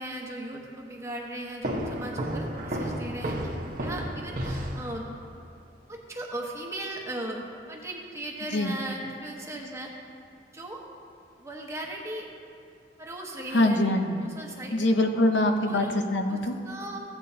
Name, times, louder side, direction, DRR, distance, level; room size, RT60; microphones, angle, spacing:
voice 1, 0.0-3.5 3.8-5.1 5.9-9.9 10.5-10.8 11.4-12.3 13.0-13.9 14.2-14.8 15.6-15.9 16.3-16.4 16.6-17.0, right 1 dB, 15° right, -1 dB, 1.1 m, -37 dB
sound 1, 1.6-5.3, right 1 dB, 50° right, 1.2 m, -32 dB
voice 2, 13.5-14.2 14.7-15.8 16.1-16.6, left 1 dB, 75° left, 5 dB, 0.8 m, -23 dB
15.5 x 8.9 x 2.8 m, 2.4 s
head